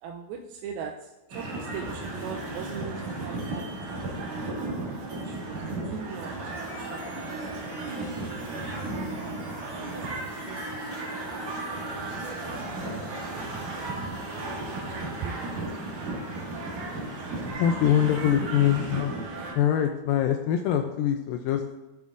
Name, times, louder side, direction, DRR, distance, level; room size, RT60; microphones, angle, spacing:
voice 1, 0.0-4.3 5.2-7.5 7.7-8.7 9.3-10.9 11.3-11.4 11.8-12.0 14.0-15.6, right 6 dB, 85° right, 2 dB, 2.4 m, -42 dB
sound 1, 1.3-19.5, right 2 dB, 50° right, 2.7 m, -34 dB
sound 2, 6.5-17.5, right 2 dB, 30° right, 2.2 m, -49 dB
voice 2, 17.6-19.1 19.6-21.8, left 10 dB, 80° left, 6 dB, 2.1 m, -24 dB
12.5 x 6.8 x 2.5 m, 1.1 s
omnidirectional pair, 4.3 m